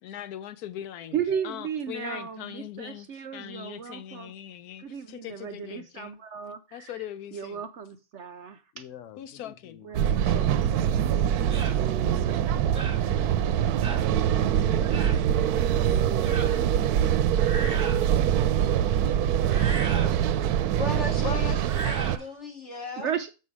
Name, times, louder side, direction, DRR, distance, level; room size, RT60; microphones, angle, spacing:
voice 1, 0.0-1.2 1.4-6.2 6.7-7.6 9.2-11.3, left 11 dB, 85° left, 1.1 m, -41 dB
voice 2, 1.1-4.3 4.8-7.1 7.3-8.9 9.8-10.7 11.4-12.7 15.8-16.7 23.0-23.3, right 7 dB, 65° right, 0.8 m, -35 dB
voice 3, 8.8-9.5 10.0-10.1 10.8-11.4 12.8-13.0 14.2-15.1 15.4-15.5 15.8-16.0 16.3-16.8 17.1-17.4 18.7-19.4 19.7-20.8 21.2-21.7, left 9 dB, 65° left, 1.0 m, -43 dB
sound 1, 9.9-22.2, right 10 dB, 85° right, 1.1 m, -24 dB
sound 2, 11.5-11.8 12.7-13.0 13.8-14.1 14.9-15.2 16.2-16.5 17.3-18.1 19.4-20.2 21.6-22.2, right 3 dB, 35° right, 1.2 m, -36 dB
voice 4, 20.8-21.5 21.8-23.1, left 2 dB, 50° left, 3.1 m, -36 dB
7.5 x 5.6 x 4.8 m
omnidirectional pair, 1.6 m